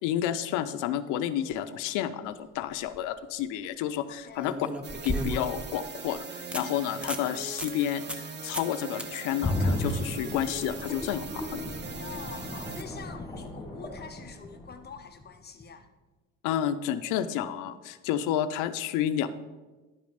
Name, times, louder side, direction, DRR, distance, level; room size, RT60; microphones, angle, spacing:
voice 1, 0.0-4.7 5.0-11.8 16.4-19.4, left 10 dB, 80° left, 11 dB, 0.7 m, -30 dB
sound 1, 2.6-3.0 4.4-5.7 6.1-6.2 6.5-6.6 7.0-7.3 7.6-7.7 8.1-8.3 8.5-8.7 9.0-9.1 12.2-12.3, equal, 5° right, 0.7 m, -34 dB
voice 2, 4.1-4.5 12.0-15.9, left 6 dB, 35° left, 7 dB, 0.6 m, -45 dB
sound 2, 4.8-12.8, right 4 dB, 35° right, 0.8 m, -41 dB
sound 3, 9.4-15.2 15.6-15.7, left 1 dB, 10° left, 1.6 m, -34 dB
10.5 x 5.3 x 5.1 m, 1.2 s
cardioid pair, 110°, 30 cm